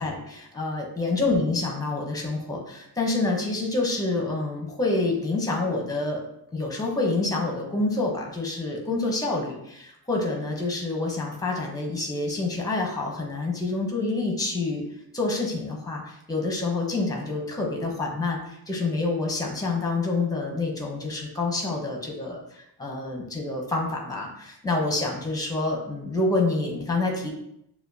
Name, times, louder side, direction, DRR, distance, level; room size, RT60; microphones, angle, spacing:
voice 1, 0.0-6.2 6.5-14.8 15.1-27.3, left 2 dB, 10° left, 0 dB, 0.7 m, -27 dB
6.6 x 2.3 x 2.7 m, 0.78 s
wide cardioid pair, 165°, 41 cm